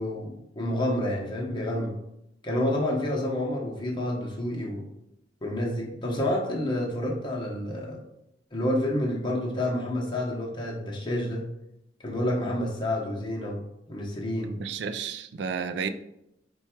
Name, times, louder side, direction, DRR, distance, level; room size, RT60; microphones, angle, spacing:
voice 1, 0.0-2.0 2.4-4.8 5.4-8.0 8.5-11.4 12.0-13.6 13.9-14.5, left 1 dB, 25° left, -2 dB, 0.9 m, -29 dB
voice 2, 14.4-15.9, right 6 dB, 70° right, 10 dB, 0.3 m, -32 dB
4.4 x 2.3 x 4.4 m, 0.83 s
head